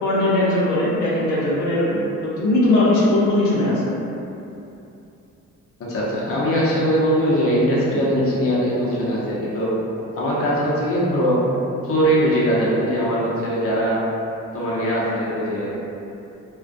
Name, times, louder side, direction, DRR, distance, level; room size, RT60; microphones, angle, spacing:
voice 1, 0.0-3.8, left 1 dB, 90° left, -8 dB, 0.6 m, -19 dB
voice 2, 5.9-9.7 10.1-11.4 11.8-14.0 14.5-15.7, equal, 50° left, -7 dB, 0.7 m, -21 dB
2.3 x 2.2 x 2.5 m, 2.8 s
cardioid pair, 90°, 30 cm